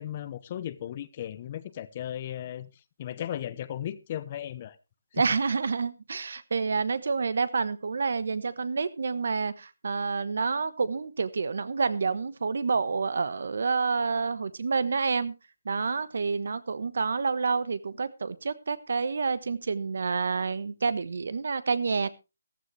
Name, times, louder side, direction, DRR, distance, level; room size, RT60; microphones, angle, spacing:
voice 1, 0.0-2.7 3.0-4.7, left 11 dB, 30° left, 0.8 m, -36 dB
voice 2, 5.1-15.4 15.6-22.1, right 4 dB, 65° right, 1.1 m, -28 dB
14.5 x 12.5 x 3.2 m
hypercardioid pair, 160°, 0 cm